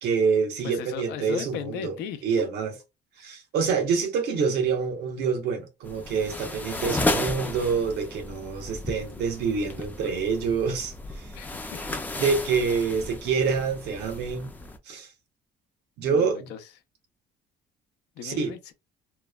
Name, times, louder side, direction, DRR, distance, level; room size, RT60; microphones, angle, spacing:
voice 1, 0.0-1.9 2.2-2.8 3.2-11.3 12.2-14.5 14.9-15.1 16.0-16.5 18.2-18.5, right 5 dB, 80° right, 0.8 m, -26 dB
voice 2, 0.6-2.2 11.3-11.8 16.0-16.6 18.2-18.7, left 8 dB, 85° left, 0.5 m, -36 dB
sound 1, 5.8-14.8, left 2 dB, 10° left, 0.3 m, -33 dB
2.9 x 2.1 x 2.2 m
cardioid pair, 110°, 17 cm